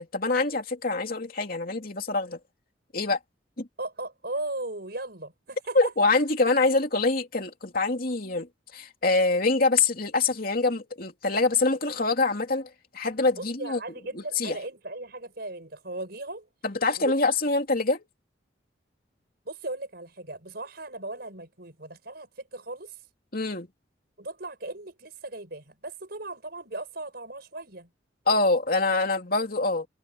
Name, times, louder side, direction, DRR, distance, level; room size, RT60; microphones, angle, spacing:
voice 1, 0.0-2.4 2.9-3.2 3.6-3.7 5.7-13.8 14.4-14.6 16.6-18.0 23.3-23.7 28.3-29.9, left 3 dB, 50° left, 2.9 m, -25 dB
voice 2, 3.8-5.9 13.4-16.5 17.0-17.1 19.4-23.1 24.2-27.9, right 2 dB, 55° right, 6.2 m, -37 dB
head